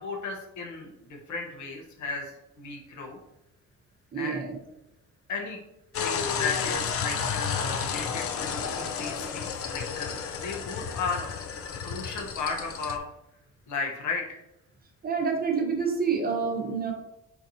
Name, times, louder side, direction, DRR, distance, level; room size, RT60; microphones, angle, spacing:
voice 1, 0.0-3.2 4.2-4.4 5.3-5.6 6.0-11.3 11.8-13.0 13.7-14.4, left 4 dB, 65° left, 1 dB, 1.0 m, -35 dB
voice 2, 4.1-4.6 15.0-16.9, right 5 dB, 30° right, 1 dB, 0.9 m, -27 dB
sound 1, 5.9-13.0, left 6 dB, 50° left, 0.5 m, -32 dB
4.5 x 4.1 x 2.7 m, 0.88 s
cardioid pair, 145°, 31 cm